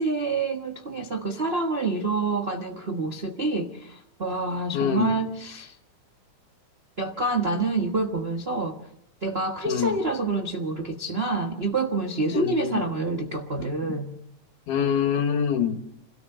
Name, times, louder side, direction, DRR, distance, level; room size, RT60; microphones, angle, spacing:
voice 1, 0.0-5.7 7.0-8.8 9.2-14.1, right 3 dB, 55° right, 0.6 m, -27 dB
voice 2, 4.7-5.1 9.7-10.0 12.3-12.8 14.7-15.8, left 8 dB, 80° left, 3.2 m, -25 dB
27.0 x 17.5 x 6.7 m
omnidirectional pair, 3.6 m